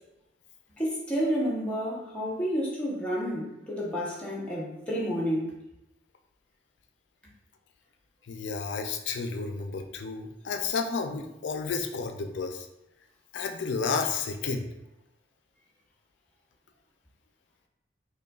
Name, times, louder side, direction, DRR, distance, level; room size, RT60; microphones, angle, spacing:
voice 1, 0.8-5.6, equal, 5° left, -6 dB, 0.8 m, -30 dB
voice 2, 8.3-12.7 13.3-14.7, left 5 dB, 70° left, 5 dB, 0.4 m, -31 dB
5.2 x 2.2 x 2.3 m, 0.90 s
head